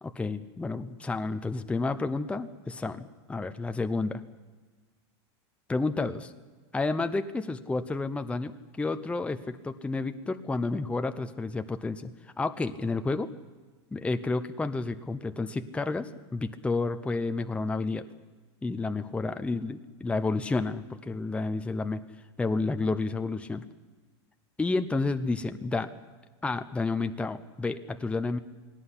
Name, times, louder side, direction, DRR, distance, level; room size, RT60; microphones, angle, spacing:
voice 1, 0.0-3.0 3.3-4.2 5.7-6.3 6.7-12.1 12.4-13.3 13.9-18.0 18.6-22.0 22.4-23.6 24.6-25.9 26.4-28.4, left 3 dB, 10° left, 9 dB, 0.8 m, -30 dB
21.0 x 17.5 x 9.9 m, 1.3 s
supercardioid pair, 130°, 14 cm